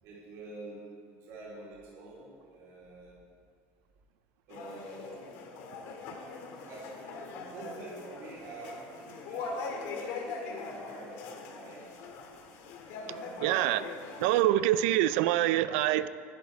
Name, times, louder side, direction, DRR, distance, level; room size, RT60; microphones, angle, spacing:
voice 1, 0.0-3.2 4.5-5.4 6.2-6.3 6.6-6.9 7.4-11.9 12.8-13.8, right 2 dB, 55° right, -6 dB, 3.1 m, -47 dB
sound 1, 4.5-14.4, left 4 dB, 75° left, 1.7 m, -41 dB
voice 2, 13.4-13.9 14.2-16.1, right 14 dB, 85° right, 15 dB, 0.4 m, -25 dB
11.0 x 11.0 x 4.6 m, 2.2 s
cardioid pair, 150°, 6 cm